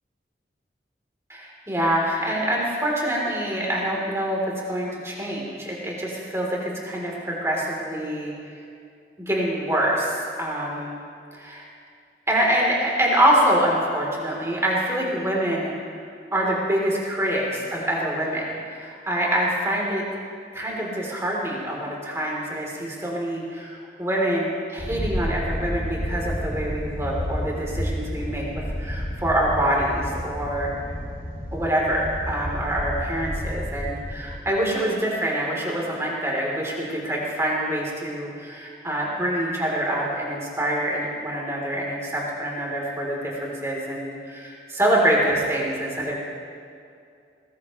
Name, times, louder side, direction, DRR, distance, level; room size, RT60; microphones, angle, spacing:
voice 1, 1.3-8.3 9.2-11.0 11.3-11.6 12.3-16.0 16.3-20.0 20.5-28.4 28.8-30.7 31.5-46.2, right 1 dB, 15° right, -4 dB, 3.6 m, -25 dB
sound 1, 24.8-34.4, equal, 50° left, 2.4 m, -30 dB
21.0 x 20.5 x 3.3 m, 2.4 s
head